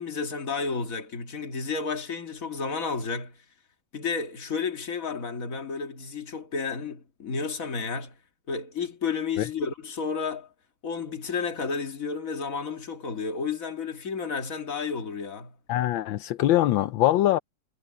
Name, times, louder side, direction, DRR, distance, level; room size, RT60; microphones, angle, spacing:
voice 1, 0.0-3.4 3.9-8.1 8.5-10.5 10.8-15.5, left 5 dB, 45° left, 2.1 m, -31 dB
voice 2, 15.7-17.4, left 14 dB, 80° left, 1.4 m, -22 dB
omnidirectional pair, 2.1 m